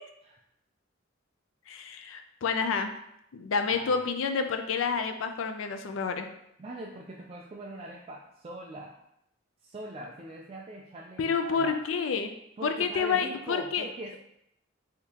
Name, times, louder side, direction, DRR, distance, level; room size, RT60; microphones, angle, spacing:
voice 1, 1.7-2.9 3.3-6.3 11.2-12.3 12.6-13.9, left 5 dB, 80° left, 7 dB, 0.4 m, -29 dB
voice 2, 6.6-9.0 9.6-11.8 12.6-14.2, right 1 dB, 30° right, -1 dB, 0.3 m, -42 dB
3.6 x 3.5 x 2.8 m, 0.77 s
head